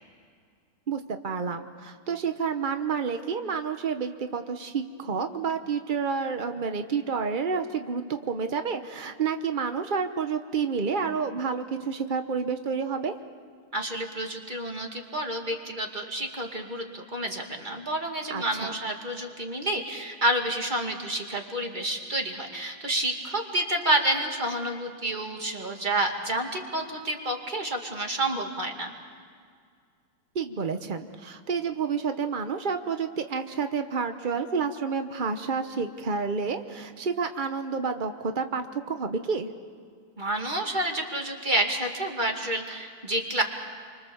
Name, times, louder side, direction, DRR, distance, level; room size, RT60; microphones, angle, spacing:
voice 1, 0.9-13.1 18.3-18.7 30.3-39.5, right 5 dB, 70° right, 7 dB, 0.4 m, -29 dB
voice 2, 13.7-28.9 40.2-43.4, right 1 dB, 20° right, 2 dB, 2.4 m, -29 dB
30.0 x 24.5 x 7.2 m, 2.1 s
omnidirectional pair, 2.4 m